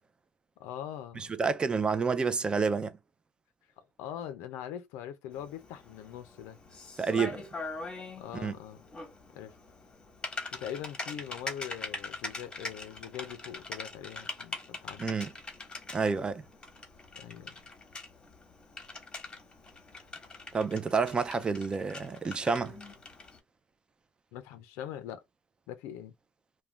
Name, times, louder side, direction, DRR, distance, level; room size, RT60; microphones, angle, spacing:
voice 1, 0.6-1.3 3.8-6.6 8.2-8.8 9.3-9.6 10.5-15.0 17.2-17.6 24.3-25.2 25.7-26.1, left 10 dB, 85° left, 0.4 m, -42 dB
voice 2, 1.2-3.0 7.0-7.4 8.3-8.5 15.0-15.3 15.9-16.4 20.5-22.8, right 5 dB, 25° right, 0.4 m, -29 dB
Typing, 5.3-23.4, left 3 dB, 20° left, 1.0 m, -43 dB
2.4 x 2.1 x 3.2 m
cardioid pair, 110°, 4 cm